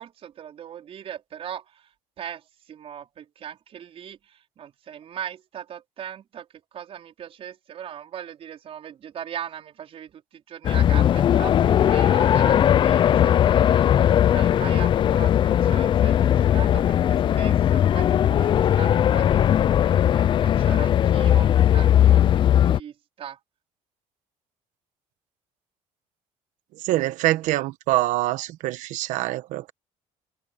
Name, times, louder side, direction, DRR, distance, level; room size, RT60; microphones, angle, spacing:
voice 1, 0.0-23.4, right 9 dB, 50° right, 4.3 m, -40 dB
sound 1, 10.6-22.8, left 10 dB, 40° left, 0.4 m, -19 dB
voice 2, 26.8-29.7, right 16 dB, 75° right, 1.2 m, -25 dB
cardioid pair, 115°, 13 cm